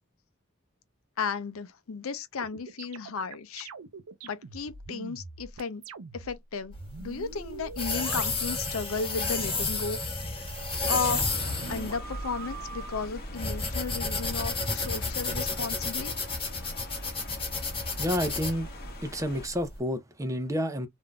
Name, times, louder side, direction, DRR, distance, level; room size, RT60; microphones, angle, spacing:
voice 1, 1.2-3.7 4.2-5.8 6.1-6.7 7.0-10.2 10.8-11.2 11.7-16.1, left 5 dB, 70° left, 0.5 m, -34 dB
sound 1, 2.4-6.4 6.6-8.9 9.2-9.9 10.3-13.1 13.7-14.9, right 5 dB, 75° right, 0.6 m, -44 dB
sound 2, 6.8-19.7, left 3 dB, 25° left, 1.3 m, -32 dB
sound 3, 11.0-19.5, left 1 dB, 45° left, 1.1 m, -42 dB
voice 2, 18.0-18.7 19.0-20.9, equal, 15° right, 0.6 m, -30 dB
3.6 x 2.6 x 2.2 m
head